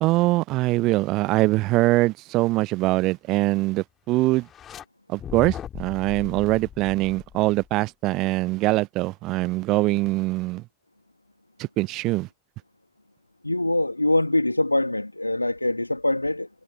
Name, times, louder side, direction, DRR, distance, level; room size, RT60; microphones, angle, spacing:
voice 1, 0.0-4.5 5.1-10.6 11.6-12.3, right 19 dB, 40° right, 0.6 m, -23 dB
sound 1, 4.4-4.8 5.2-7.8, left 9 dB, 25° left, 2.2 m, -38 dB
voice 2, 13.4-16.5, left 1 dB, 85° left, 1.8 m, -23 dB
figure-of-eight pair, 90°, 0 cm